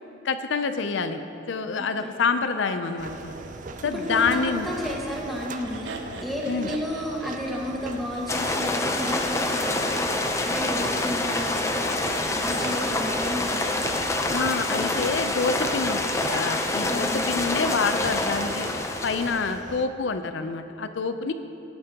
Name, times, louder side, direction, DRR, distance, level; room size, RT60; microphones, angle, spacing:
voice 1, 0.2-1.2 1.5-3.3 3.8-4.7 6.5-6.7 14.3-21.3, left 4 dB, 85° left, 9 dB, 0.5 m, -27 dB
voice 2, 1.8-2.1 3.9-5.9 6.2-13.8 16.9-17.3, left 1 dB, ahead, -4 dB, 1.5 m, -33 dB
Laughter, 2.8-8.9, right 3 dB, 75° right, 0.8 m, -41 dB
sound 1, 3.0-19.9, right 3 dB, 45° right, 0.5 m, -39 dB
sound 2, 8.3-19.6, left 2 dB, 15° left, 0.6 m, -27 dB
17.5 x 8.7 x 2.9 m, 2.8 s
head